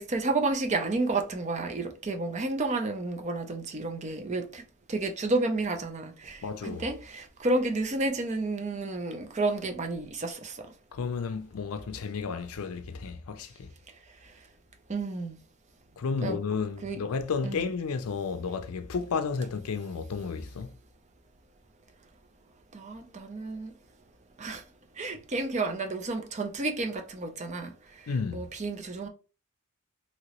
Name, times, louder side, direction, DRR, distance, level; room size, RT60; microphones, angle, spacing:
voice 1, 0.0-4.6 4.9-10.7 14.9-15.4 16.2-16.4 16.8-17.0 17.4-17.6 22.7-23.7 24.4-24.6 25.0-27.7 28.0-29.1, right 2 dB, 30° right, 0.5 m, -31 dB
voice 2, 6.4-6.8 10.9-13.7 16.0-20.7 28.1-28.5, left 5 dB, 75° left, 0.4 m, -32 dB
2.9 x 2.9 x 2.9 m
head